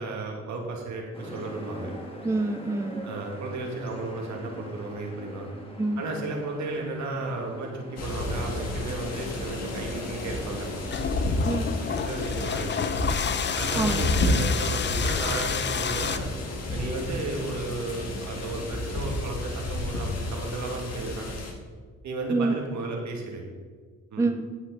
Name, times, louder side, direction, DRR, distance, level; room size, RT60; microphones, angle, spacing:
voice 1, 0.0-1.9 3.0-5.5 6.0-10.7 11.9-13.0 13.5-16.3 16.7-21.4 22.0-23.4 24.1-24.3, right 2 dB, 70° right, 1 dB, 2.4 m, -34 dB
sound 1, 1.1-11.1, equal, 20° left, 2.1 m, -44 dB
voice 2, 2.2-3.0 5.8-6.0 11.5-11.8 13.8-14.0 22.3-22.5 24.2-24.5, right 3 dB, 10° right, 8 dB, 0.5 m, -26 dB
sound 2, 8.0-21.5, left 2 dB, 55° left, 2.0 m, -31 dB
sound 3, 10.6-16.2, left 7 dB, 35° left, 0.6 m, -30 dB
16.0 x 5.9 x 4.1 m, 1.5 s
cardioid pair, 90°, 30 cm